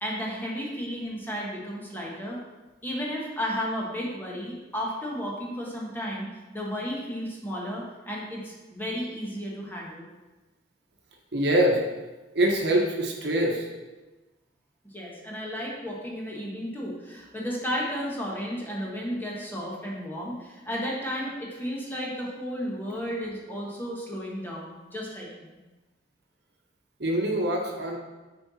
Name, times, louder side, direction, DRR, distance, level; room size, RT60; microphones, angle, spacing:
voice 1, 0.0-2.4 2.8-6.3 6.5-10.1 14.9-25.6, equal, 10° left, -4 dB, 1.3 m, -33 dB
voice 2, 11.3-11.8 12.3-13.7 27.0-28.0, right 1 dB, 60° right, 1 dB, 1.1 m, -24 dB
7.8 x 4.5 x 4.2 m, 1.2 s
head